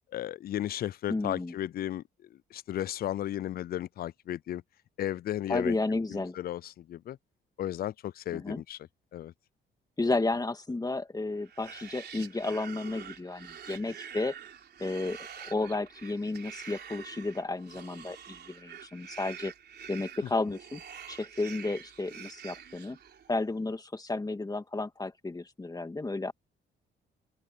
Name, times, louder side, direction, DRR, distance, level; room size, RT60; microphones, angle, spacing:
voice 1, 0.1-2.0 2.5-4.6 5.0-5.8 6.1-7.2 7.6-8.8 9.1-9.3, left 12 dB, 50° left, 0.4 m, -34 dB
voice 2, 1.1-1.5 5.5-6.4 8.3-8.6 10.0-14.3 14.8-19.5 19.9-20.8 21.1-23.0 23.3-26.3, left 2 dB, 20° left, 2.1 m, -32 dB
sound 1, 11.4-23.4, right 8 dB, 55° right, 3.7 m, -47 dB
open air
cardioid pair, 90°, 20 cm